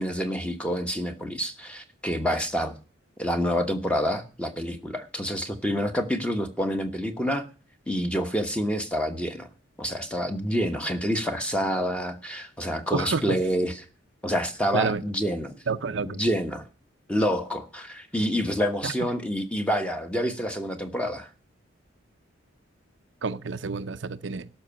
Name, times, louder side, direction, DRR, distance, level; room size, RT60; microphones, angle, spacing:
voice 1, 0.0-2.7 3.2-7.4 7.9-9.5 9.8-13.8 14.2-15.5 16.0-16.6 17.1-21.3, equal, 5° left, 1.2 m, -27 dB
voice 2, 12.9-13.4 14.7-15.0 15.7-16.2 18.8-18.9 23.2-24.5, right 4 dB, 65° right, 0.6 m, -28 dB
12.5 x 6.1 x 8.9 m
head